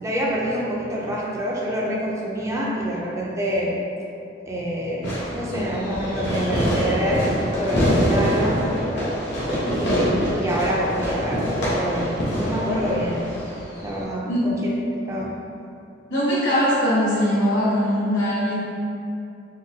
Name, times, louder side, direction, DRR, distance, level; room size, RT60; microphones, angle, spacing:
voice 1, 0.0-3.8 4.5-8.7 9.7-13.3 13.8-14.7 15.1-15.3, equal, 15° right, -4 dB, 0.3 m, -26 dB
Fireworks, 5.0-14.0, equal, 70° left, 0.8 m, -25 dB
voice 2, 16.1-18.5, equal, 85° left, -10 dB, 1.4 m, -21 dB
3.7 x 2.2 x 2.6 m, 2.7 s
head